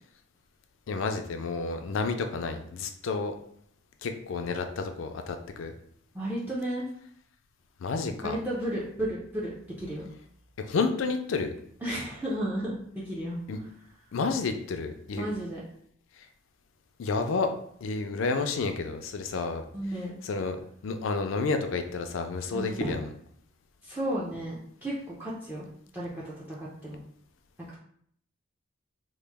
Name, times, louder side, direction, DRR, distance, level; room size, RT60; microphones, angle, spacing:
voice 1, 0.9-3.3 4.0-5.7 7.8-8.4 10.6-11.5 13.5-13.6 14.1-15.3 17.0-17.5 17.8-19.6 20.2-20.6 20.8-23.0, left 4 dB, 75° left, 6 dB, 0.4 m, -30 dB
voice 2, 6.1-6.8 8.2-10.1 11.8-13.4 15.2-15.6 19.7-20.2 22.5-22.9 23.8-24.9 25.2-25.7 25.9-27.0 27.6-27.8, right 1 dB, 10° right, -6 dB, 0.4 m, -33 dB
3.0 x 2.0 x 3.3 m, 0.66 s
head